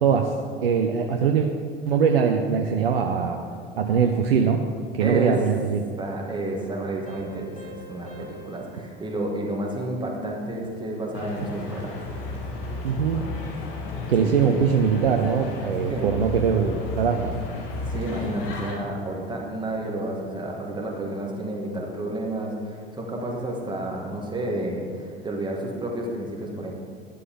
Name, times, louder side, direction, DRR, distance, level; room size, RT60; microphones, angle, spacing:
voice 1, 0.0-0.3 0.6-1.5 1.9-3.4 3.8-4.6 4.9-5.8 12.8-13.2 14.1-17.3, right 6 dB, 70° right, 4 dB, 0.7 m, -22 dB
voice 2, 5.0-5.3 6.0-11.9 14.2-14.3 15.9-16.1 17.9-26.7, right 1 dB, 15° right, -1 dB, 2.2 m, -31 dB
Piano, 7.1-10.4, equal, 20° left, 3.1 m, -46 dB
sound 1, 11.1-18.8, left 2 dB, 50° left, 1.9 m, -33 dB
11.0 x 11.0 x 3.9 m, 2.2 s
figure-of-eight pair, 70°, 30 cm